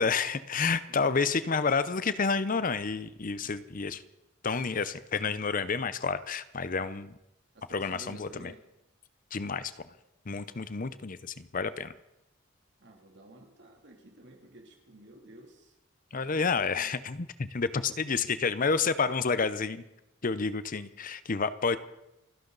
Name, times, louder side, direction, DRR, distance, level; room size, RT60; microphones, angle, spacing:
voice 1, 0.0-4.0 4.4-7.1 7.7-8.5 9.3-9.7 10.3-11.9 16.1-19.8 20.2-21.8, left 5 dB, 40° left, 14 dB, 0.7 m, -29 dB
voice 2, 0.9-1.2 3.4-3.5 5.4-5.5 6.8-6.9 7.5-8.6 10.3-10.8 12.8-15.8 16.1-16.9, right 1 dB, 60° right, 2 dB, 2.9 m, -53 dB
29.0 x 11.5 x 4.0 m, 0.90 s
head